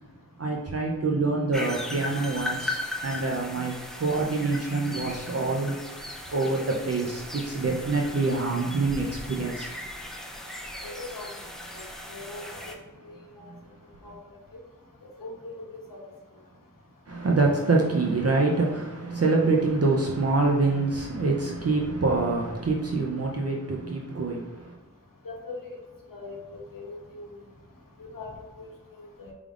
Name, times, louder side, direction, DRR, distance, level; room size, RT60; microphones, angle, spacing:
voice 1, 0.4-5.8 6.3-9.7 13.5-13.6 17.1-24.8, right 3 dB, 50° right, -1 dB, 0.6 m, -26 dB
sound 1, 1.5-12.7, left 1 dB, ahead, 0.6 m, -37 dB
voice 2, 10.8-11.3 11.7-12.7 13.0-13.5 14.0-14.1 15.2-16.0 25.2-25.7 26.1-27.3 28.0-28.3 28.6-28.7 29.2-29.3, left 3 dB, 90° left, -2 dB, 1.0 m, -41 dB
4.8 x 3.5 x 2.4 m, 1.3 s
wide cardioid pair, 55°, 33 cm